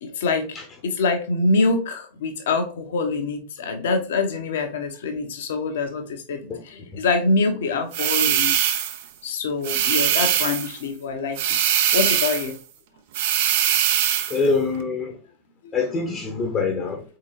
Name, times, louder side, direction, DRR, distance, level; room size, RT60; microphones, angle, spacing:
voice 1, 0.0-8.5 9.2-11.4 11.7-12.6 15.6-15.8, left 3 dB, 60° left, 0.7 m, -25 dB
sound 1, 7.9-9.0 9.6-10.7 11.4-12.5 13.1-14.4, right 10 dB, 50° right, 0.4 m, -21 dB
voice 2, 14.3-15.2 15.7-17.0, left 4 dB, 25° left, 0.7 m, -24 dB
4.0 x 3.7 x 3.0 m
figure-of-eight pair, 90°, 0 cm